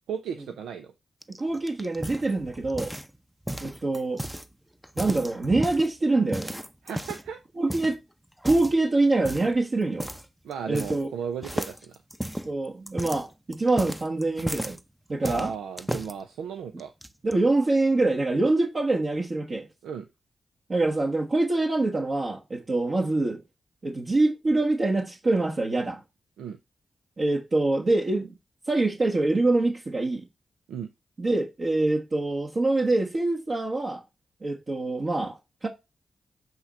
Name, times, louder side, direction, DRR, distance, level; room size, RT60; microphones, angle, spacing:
voice 1, 0.1-0.9 6.8-7.4 10.4-11.9 15.2-16.9 19.8-20.1 26.4-26.6 30.7-30.9, right 7 dB, 90° right, 0.5 m, -35 dB
sound 1, 1.2-3.2 3.5-4.5 4.8-5.9 6.3-7.3 7.7-8.0 8.4-8.8 9.2-9.6 10.0-10.2 10.5-11.2 11.4-14.8 15.2-16.1 16.8-17.3, right 1 dB, 5° right, 0.6 m, -34 dB
voice 2, 1.4-2.9 3.6-4.2 5.0-6.5 7.6-8.0 8.4-10.1 10.7-11.1 12.4-14.8 15.1-15.5 17.2-19.7 20.7-23.4 23.8-26.0 27.2-28.3 28.7-30.2 31.2-34.0 34.4-35.7, right 2 dB, 50° right, 1.3 m, -25 dB
7.9 x 3.1 x 6.2 m
supercardioid pair, 40°, 0 cm